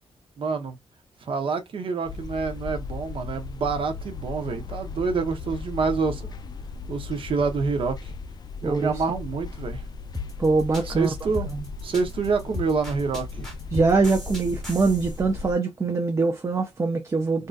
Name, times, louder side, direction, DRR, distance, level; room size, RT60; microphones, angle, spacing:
voice 1, 0.4-0.8 1.2-6.3 6.9-8.1 8.6-9.8 10.9-11.5 11.8-13.5, right 4 dB, 55° right, 0.8 m, -27 dB
sound 1, 2.1-15.5, left 4 dB, 40° left, 0.3 m, -37 dB
voice 2, 8.6-9.0 10.4-11.1 11.5-11.6 13.7-17.5, right 3 dB, 25° right, 0.5 m, -23 dB
sound 2, 10.1-15.2, left 3 dB, 5° left, 1.3 m, -36 dB
3.7 x 2.7 x 2.3 m
wide cardioid pair, 175°, 11 cm